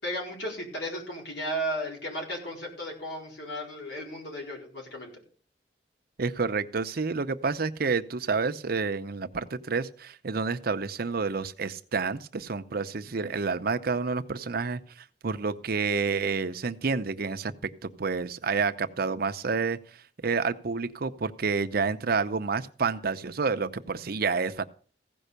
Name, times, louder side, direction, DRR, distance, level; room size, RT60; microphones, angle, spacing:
voice 1, 0.0-5.1, equal, 80° left, -1 dB, 4.5 m, -34 dB
voice 2, 6.2-17.5 17.8-19.8 20.2-24.6, right 4 dB, 60° right, 9 dB, 0.7 m, -29 dB
15.5 x 5.4 x 6.7 m, 0.44 s
head